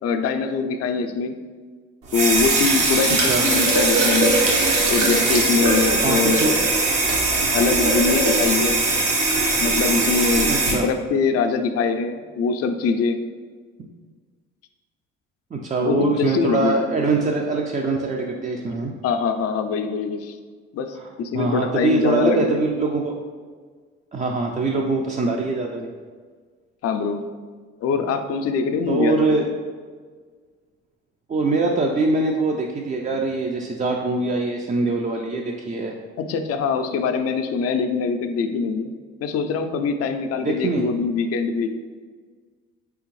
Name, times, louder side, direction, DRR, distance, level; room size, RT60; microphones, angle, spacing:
voice 1, 0.0-1.4 2.1-4.3 4.9-6.5 7.5-8.8 9.6-13.2 15.8-16.8 19.0-20.4 20.7-22.6 26.8-27.2 27.8-29.2 36.2-38.9 39.2-41.8, left 5 dB, 50° left, 7 dB, 0.4 m, -23 dB
sound 1, 2.1-10.7, right 2 dB, 75° right, 1.0 m, -20 dB
voice 2, 6.0-6.6 10.5-10.9 15.5-18.9 21.0-21.1 21.3-23.2 24.1-25.9 28.9-29.5 31.3-36.0 40.4-40.9, right 3 dB, 25° right, 0 dB, 0.4 m, -23 dB
3.6 x 3.4 x 3.1 m, 1.5 s
hypercardioid pair, 55°, 31 cm